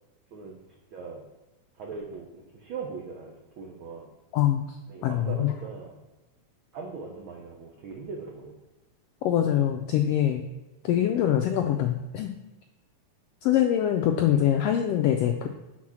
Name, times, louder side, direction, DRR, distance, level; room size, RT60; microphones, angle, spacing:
voice 1, 0.3-0.6 0.9-1.2 1.7-4.1 4.9-6.0 6.7-8.6, right 4 dB, 80° right, 0 dB, 1.1 m, -40 dB
voice 2, 4.3-4.8 5.0-5.5 9.2-10.5 10.8-12.3 13.4-15.5, left 11 dB, 85° left, 5 dB, 1.4 m, -24 dB
6.0 x 4.0 x 6.2 m, 1.1 s
omnidirectional pair, 3.3 m